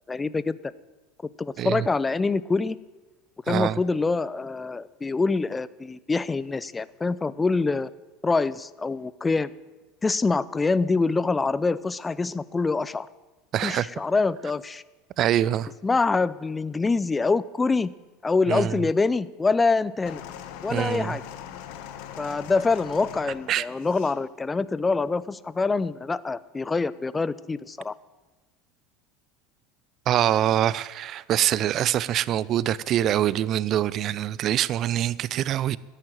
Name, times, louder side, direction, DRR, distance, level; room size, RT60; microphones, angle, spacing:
voice 1, 0.1-0.6 1.4-2.8 3.5-7.9 8.2-9.5 10.0-13.1 13.6-14.8 15.8-17.9 18.2-20.2 20.6-21.2 22.2-27.9, left 3 dB, 15° left, 18 dB, 0.6 m, -25 dB
voice 2, 3.5-3.8 13.5-13.9 15.2-15.7 18.5-18.9 20.7-21.2 23.5-23.7 30.1-35.8, right 11 dB, 40° right, 20 dB, 0.5 m, -24 dB
sound 1, 20.1-24.2 25.1-25.2, left 10 dB, 55° left, 1.2 m, -41 dB
14.5 x 10.0 x 9.1 m, 1.2 s
figure-of-eight pair, 75°, 0 cm